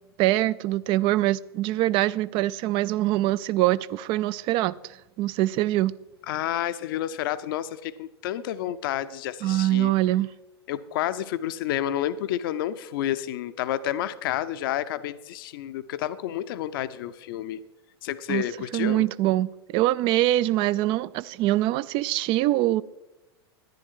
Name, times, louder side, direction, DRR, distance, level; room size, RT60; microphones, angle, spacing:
voice 1, 0.2-5.9 9.4-10.3 18.3-18.4 18.7-22.8, right 15 dB, 40° right, 0.4 m, -24 dB
voice 2, 6.3-9.9 10.7-17.6 18.0-19.0, left 12 dB, 55° left, 0.6 m, -30 dB
10.5 x 10.5 x 4.6 m
figure-of-eight pair, 90°, 14 cm